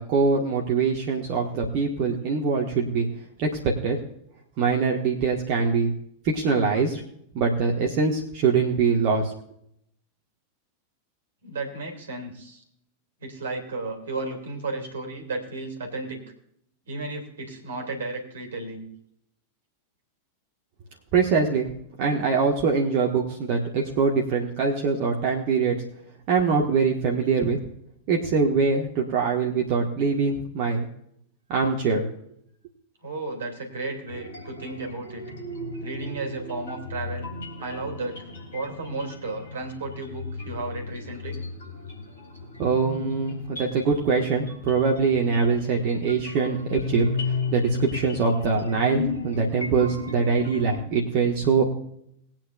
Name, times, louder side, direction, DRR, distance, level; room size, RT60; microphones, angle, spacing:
voice 1, 0.0-3.1 3.4-3.5 3.8-4.0 4.6-5.9 6.2-7.0 7.3-9.3 21.1-21.7 22.0-25.8 26.3-27.6 28.1-30.9 31.5-32.0 42.6-51.6, right 5 dB, 45° right, -1 dB, 1.6 m, -23 dB
voice 2, 11.4-12.6 13.2-16.2 16.9-18.9 33.0-35.2 35.8-37.3 37.6-41.4, right 3 dB, 65° right, 3 dB, 2.7 m, -34 dB
sound 1, 34.1-50.9, left 4 dB, 65° left, 3.0 m, -35 dB
21.0 x 9.1 x 2.5 m, 0.71 s
figure-of-eight pair, 90°, 0 cm